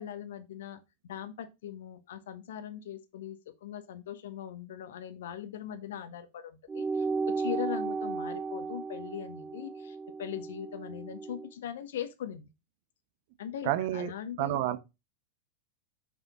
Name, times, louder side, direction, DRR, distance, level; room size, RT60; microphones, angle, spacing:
voice 1, 0.0-12.5 13.4-14.6, left 10 dB, 65° left, 1.1 m, -40 dB
sound 1, 6.7-11.5, right 4 dB, 20° right, 0.8 m, -34 dB
voice 2, 13.6-14.1 14.4-14.8, right 13 dB, 50° right, 1.1 m, -29 dB
6.3 x 6.3 x 3.6 m
figure-of-eight pair, 90°, 0 cm